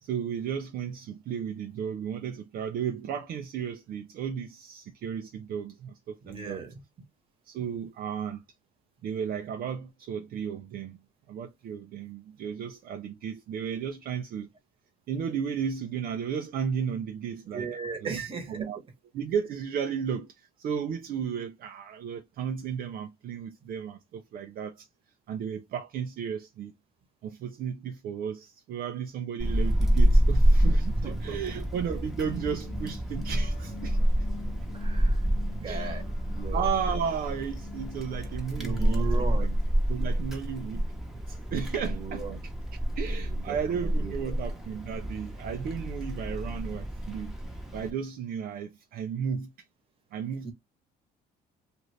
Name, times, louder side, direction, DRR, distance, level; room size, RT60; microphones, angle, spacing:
voice 1, 0.0-6.6 7.5-8.4 9.0-11.0 11.3-14.5 15.1-18.8 19.1-24.9 25.3-26.7 27.2-34.0 35.6-36.0 36.5-39.5 39.9-42.5 43.0-47.4 47.7-49.5 50.1-50.5, right 7 dB, 60° right, 0.5 m, -34 dB
voice 2, 6.2-6.8 17.5-18.7 31.0-31.4 34.5-35.2 35.6-36.0 36.3-36.6 38.6-39.6 41.8-42.4 43.0-44.3 50.4-50.5, right 5 dB, 30° right, 1.2 m, -37 dB
Wind, 29.4-47.9, equal, ahead, 0.9 m, -28 dB
sound 1, 32.2-39.1, left 7 dB, 65° left, 1.2 m, -47 dB
2.6 x 2.5 x 3.1 m
cardioid pair, 110°, 17 cm